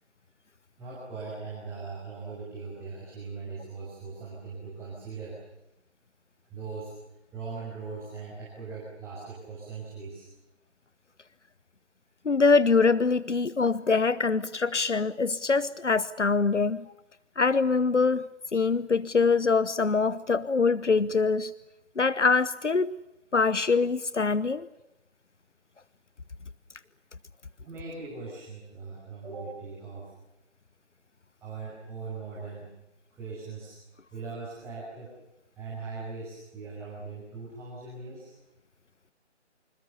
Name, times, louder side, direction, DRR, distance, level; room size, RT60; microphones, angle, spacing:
voice 1, 0.8-5.4 6.5-6.9 7.3-10.2 27.6-30.1 31.4-32.7 33.1-33.8 34.1-35.2 35.6-38.3, right 4 dB, 5° right, -6 dB, 5.9 m, -40 dB
voice 2, 12.2-16.8 17.4-21.5 22.0-22.9 23.3-24.7, left 4 dB, 80° left, 17 dB, 1.1 m, -24 dB
28.5 x 26.5 x 6.9 m, 0.91 s
figure-of-eight pair, 155°, 35 cm